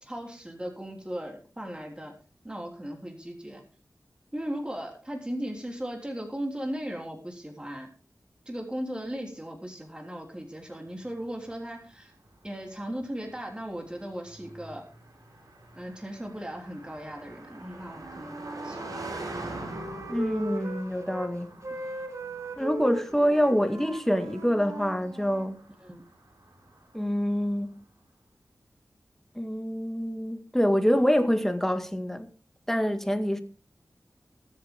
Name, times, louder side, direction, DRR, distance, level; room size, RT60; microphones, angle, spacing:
voice 1, 0.0-2.1 2.4-3.6 4.3-7.9 8.4-12.1 12.4-14.8 15.7-18.8 25.8-26.0, equal, 15° right, 3.4 m, -37 dB
Car passing by, 11.0-27.4, right 2 dB, 70° right, 6.6 m, -45 dB
Wind instrument woodwind instrument, 17.9-21.3 21.6-25.5, right 2 dB, 55° right, 2.9 m, -38 dB
voice 2, 20.1-21.5 22.6-25.6 26.9-27.8 29.4-32.3 32.7-33.4, equal, 5° left, 1.9 m, -26 dB
22.0 x 8.0 x 3.7 m
wide cardioid pair, 75°, 6 cm